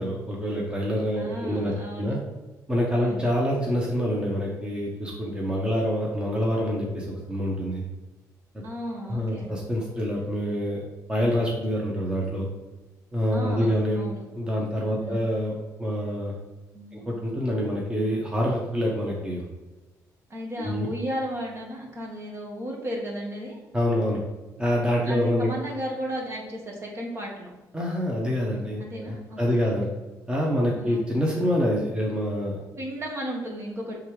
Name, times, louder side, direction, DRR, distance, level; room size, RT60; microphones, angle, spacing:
voice 1, 0.0-2.2 2.7-7.8 9.1-10.8 11.1-12.5 13.1-14.1 14.3-15.5 15.8-16.3 16.9-19.5 20.6-20.9 23.7-24.2 24.6-25.5 27.7-29.9 30.3-32.6, equal, 15° right, -3 dB, 1.3 m, -26 dB
voice 2, 1.1-2.2 2.9-3.3 8.6-9.5 13.3-14.2 14.9-15.2 16.7-17.0 20.3-23.6 25.1-27.5 28.8-29.6 30.7-31.0 32.8-34.0, equal, 40° right, -1 dB, 1.7 m, -34 dB
5.4 x 3.6 x 5.0 m, 1.2 s
cardioid pair, 95°, 7 cm